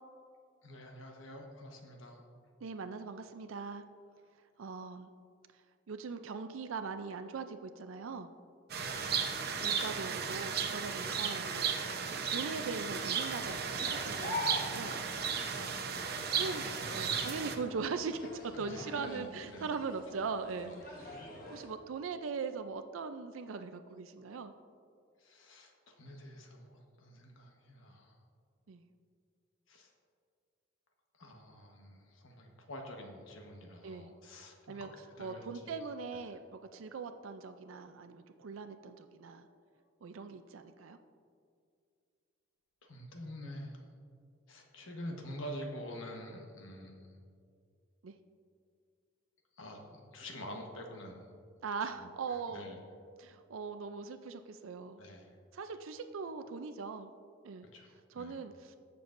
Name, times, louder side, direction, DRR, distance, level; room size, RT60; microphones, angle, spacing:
voice 1, 0.6-2.2 8.7-9.2 15.3-15.6 18.5-19.7 20.2-20.3 20.6-20.9 25.2-28.2 29.7-29.9 31.1-34.9 35.2-35.7 39.4-39.5 42.8-43.8 44.5-47.2 49.6-51.4 52.0-52.1 52.4-52.8 55.0-55.3 57.7-58.4, equal, 80° left, 2 dB, 1.2 m, -47 dB
voice 2, 2.6-3.8 4.6-5.1 5.9-8.3 9.6-15.0 15.6-15.8 16.4-16.6 16.9-24.5 28.7-28.8 33.8-34.1 34.7-34.9 35.2-39.5 40.0-41.0 48.0-48.2 51.6-52.6 53.2-55.0 55.5-57.1 57.4-57.7 58.1-58.8, right 4 dB, 85° right, 8 dB, 0.4 m, -41 dB
sound 1, 8.7-17.5, right 6 dB, 50° right, 0.8 m, -35 dB
sound 2, 13.1-21.7, left 2 dB, 45° left, 1.3 m, -45 dB
19.0 x 6.8 x 2.6 m, 2.3 s
head